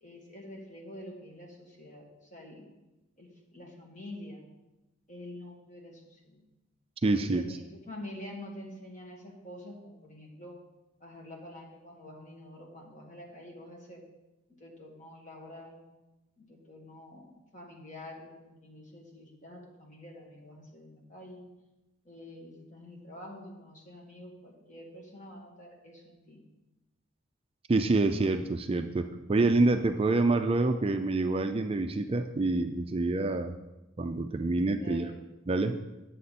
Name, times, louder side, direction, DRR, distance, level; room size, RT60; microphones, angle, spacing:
voice 1, 0.0-2.7 3.2-4.5 5.1-6.4 7.2-10.6 11.0-14.0 14.6-15.8 16.4-21.5 22.1-26.4 34.8-35.1, left 1 dB, 40° left, -1 dB, 1.9 m, -47 dB
voice 2, 7.0-7.4 27.7-33.5 34.0-35.1 35.5-35.8, right 2 dB, 30° right, 7 dB, 0.4 m, -27 dB
9.6 x 7.7 x 4.2 m, 1.0 s
head